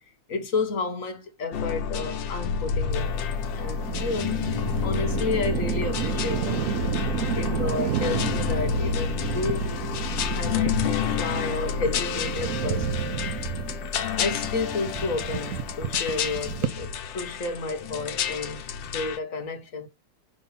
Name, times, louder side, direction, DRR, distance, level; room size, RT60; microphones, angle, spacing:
voice 1, 0.3-3.2 3.5-4.5 4.8-6.7 7.3-9.7 10.3-12.9 14.2-19.9, left 4 dB, 50° left, 1.4 m, -31 dB
sound 1, 1.5-19.2, left 7 dB, 85° left, 1.6 m, -29 dB
sound 2, 2.9-16.7, right 9 dB, 65° right, 0.9 m, -31 dB
5.6 x 3.7 x 5.6 m
omnidirectional pair, 2.0 m